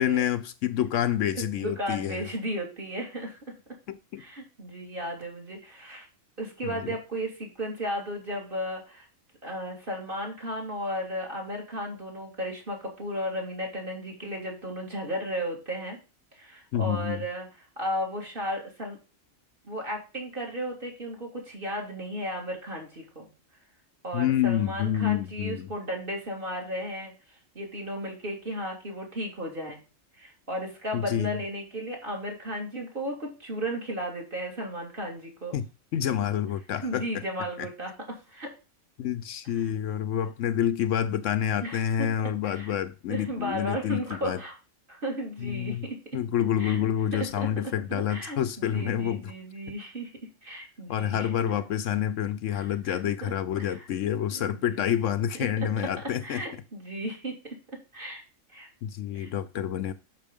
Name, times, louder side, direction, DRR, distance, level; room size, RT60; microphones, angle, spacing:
voice 1, 0.0-2.2 3.9-4.2 6.6-6.9 16.7-17.2 24.1-25.7 30.9-31.4 35.5-35.7 35.9-37.2 37.6-37.7 39.0-44.4 45.4-45.8 46.1-49.3 50.9-56.4 58.8-59.9, left 10 dB, 75° left, 0.9 m, -28 dB
voice 2, 1.3-3.5 4.2-6.1 6.4-9.1 9.4-16.0 16.3-17.5 17.8-19.0 19.6-23.3 24.0-29.8 30.1-35.6 36.8-38.5 41.6-42.1 42.4-42.8 43.1-44.5 44.9-46.0 46.6-46.9 47.1-47.5 47.9-50.1 50.4-51.3 52.5-53.9 54.3-54.8 55.4-55.5 56.2-57.6 57.9-58.2 58.5-58.7 59.1-59.3, equal, 40° right, 2.6 m, -35 dB
6.1 x 6.1 x 5.2 m
omnidirectional pair, 1.4 m